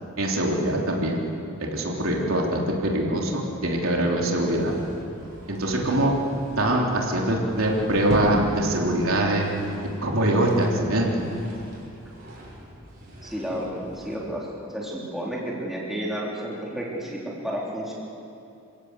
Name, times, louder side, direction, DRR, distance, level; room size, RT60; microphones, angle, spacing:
voice 1, 0.2-1.2 1.6-4.7 5.5-6.1 6.6-9.5 10.0-11.1, right 1 dB, 75° right, -1 dB, 3.4 m, -23 dB
sound 1, 4.4-14.2, equal, 45° right, 6.5 m, -37 dB
voice 2, 13.2-17.9, equal, ahead, -5 dB, 3.8 m, -31 dB
27.5 x 16.0 x 8.2 m, 2.6 s
head